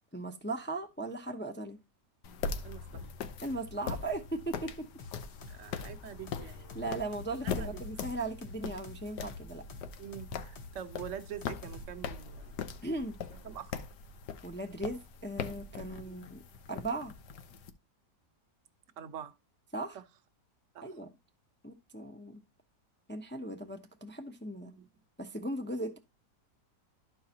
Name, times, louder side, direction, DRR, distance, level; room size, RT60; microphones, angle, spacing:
voice 1, 0.1-1.8 3.4-4.9 6.7-9.6 12.8-13.2 14.4-16.4 16.7-17.1 19.7-20.0 20.8-21.1 21.6-22.4 23.1-24.7 25.2-26.0, right 2 dB, 15° left, 0.4 m, -38 dB
sound 1, 2.2-17.7, left 6 dB, 80° left, 1.4 m, -41 dB
voice 2, 2.6-3.1 5.5-6.8 7.4-7.8 10.0-12.8 13.4-13.8 16.0-16.2 19.0-19.3 19.9-20.0 20.7-20.9 24.6-24.9, right 9 dB, 55° right, 1.0 m, -45 dB
sound 2, 5.0-11.8, left 4 dB, 65° left, 1.6 m, -49 dB
12.5 x 4.7 x 2.7 m
omnidirectional pair, 1.8 m